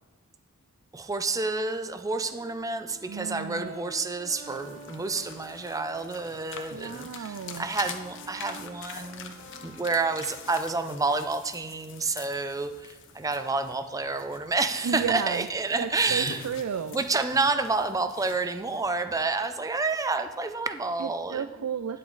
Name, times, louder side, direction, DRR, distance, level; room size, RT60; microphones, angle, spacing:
voice 1, 0.9-9.3 9.6-16.4 16.9-21.4, right 3 dB, 15° right, 8 dB, 0.5 m, -29 dB
Brass instrument, 2.2-6.2 6.7-10.8, right 2 dB, 65° right, 2.3 m, -49 dB
voice 2, 3.1-3.7 6.7-7.7 14.8-15.5 15.8-17.0 21.0-22.0, right 7 dB, 80° right, 10 dB, 0.4 m, -33 dB
sound 1, 4.5-19.0, left 6 dB, 60° left, 0.8 m, -45 dB
9.8 x 7.5 x 4.0 m, 1.1 s
head